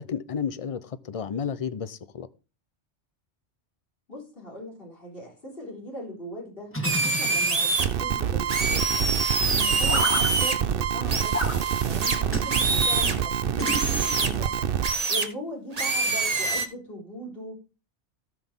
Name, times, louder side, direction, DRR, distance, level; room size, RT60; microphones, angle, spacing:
voice 1, 0.0-2.3, left 7 dB, 35° left, 0.7 m, -32 dB
voice 2, 4.1-9.0 9.5-11.4 11.8-14.5 15.1-17.6, equal, 55° left, 4.0 m, -39 dB
sound 1, 6.7-7.9 9.9-10.3 11.3-11.6 12.3-12.5 13.6-14.4, left 1 dB, 10° left, 1.7 m, -31 dB
sound 2, 6.8-7.8 8.5-10.5 11.1-13.2 13.6-14.3 14.8-15.3 15.7-16.7, right 3 dB, 35° right, 1.2 m, -25 dB
sound 3, 7.8-14.9, right 9 dB, 55° right, 0.8 m, -27 dB
17.5 x 6.0 x 3.7 m
omnidirectional pair, 1.2 m